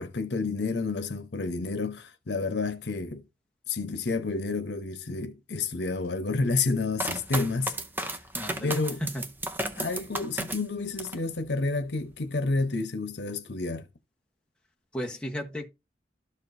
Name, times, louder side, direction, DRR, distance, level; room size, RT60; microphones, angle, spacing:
voice 1, 0.0-3.2 3.7-7.8 8.6-9.0 9.7-13.9, left 3 dB, 80° left, 0.9 m, -30 dB
sound 1, 7.0-11.3 11.7-12.3, right 1 dB, 10° right, 0.7 m, -34 dB
voice 2, 8.3-9.3 14.9-15.7, equal, 5° left, 1.1 m, -34 dB
13.0 x 4.4 x 2.6 m
head